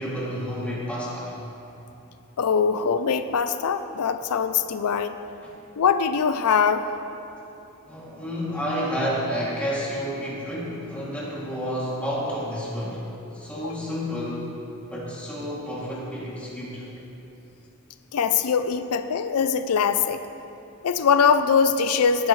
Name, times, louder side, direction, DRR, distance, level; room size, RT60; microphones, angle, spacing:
voice 1, 0.0-1.3 5.4-5.5 7.9-13.1 13.3-14.5 14.9-16.8, equal, 5° left, -7 dB, 2.5 m, -30 dB
voice 2, 2.4-5.2 5.8-6.9 13.6-13.7 18.1-20.2 20.8-22.3, left 6 dB, 85° left, 9 dB, 0.4 m, -22 dB
17.5 x 10.0 x 3.2 m, 3.0 s
head